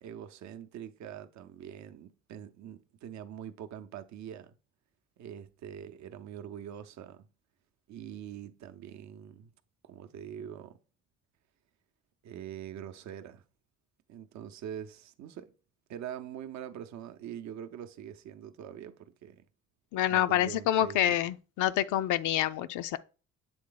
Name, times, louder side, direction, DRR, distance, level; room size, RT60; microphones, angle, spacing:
voice 1, 0.0-4.5 5.2-7.3 7.9-9.5 9.8-10.8 12.2-13.4 14.1-15.5 15.9-19.5 20.1-21.1, right 9 dB, 65° right, 0.7 m, -44 dB
voice 2, 19.9-23.0, left 12 dB, 70° left, 0.5 m, -27 dB
7.8 x 3.4 x 3.8 m
cardioid pair, 90°, 31 cm